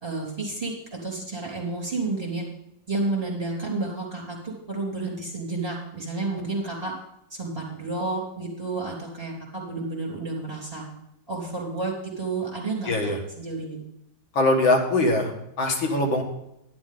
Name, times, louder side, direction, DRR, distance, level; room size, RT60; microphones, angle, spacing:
voice 1, 0.0-2.4 2.9-6.9 7.3-10.9 11.3-13.1 13.4-13.8, right 3 dB, 20° right, -5 dB, 3.5 m, -31 dB
voice 2, 12.9-13.2 14.4-16.2, left 2 dB, 80° left, 2 dB, 2.2 m, -22 dB
11.0 x 11.0 x 3.8 m, 0.82 s
omnidirectional pair, 2.1 m